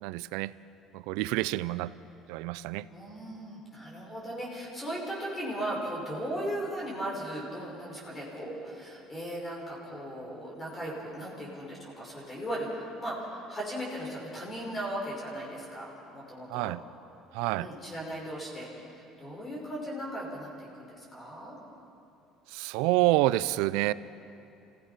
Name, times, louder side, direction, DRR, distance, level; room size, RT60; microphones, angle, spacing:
voice 1, 0.0-0.5 0.9-1.9 2.3-2.9 16.5-16.8 17.3-17.7 22.5-23.9, right 18 dB, 85° right, 18 dB, 0.5 m, -28 dB
voice 2, 2.9-16.8 17.5-21.6, right 1 dB, 20° left, -4 dB, 5.4 m, -37 dB
27.0 x 16.5 x 5.8 m, 2.7 s
cardioid pair, 125°, 0 cm